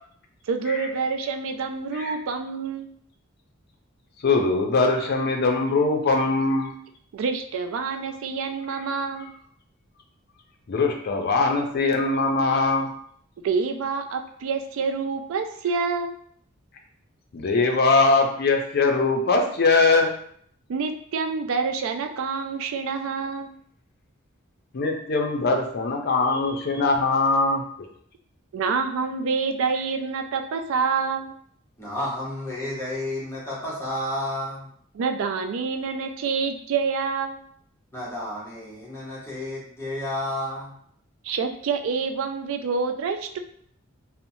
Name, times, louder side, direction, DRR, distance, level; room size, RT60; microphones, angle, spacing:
voice 1, 0.5-2.9 7.1-9.3 13.4-16.1 20.7-23.5 28.5-31.3 34.9-37.4 41.2-43.4, right 5 dB, 75° right, 6 dB, 0.3 m, -27 dB
voice 2, 4.2-6.7 10.7-12.9 17.3-20.1 24.7-27.6, left 3 dB, 50° left, 2 dB, 0.5 m, -21 dB
voice 3, 31.8-34.7 37.9-40.7, left 1 dB, 10° left, -6 dB, 0.8 m, -31 dB
2.9 x 2.0 x 2.6 m, 0.62 s
head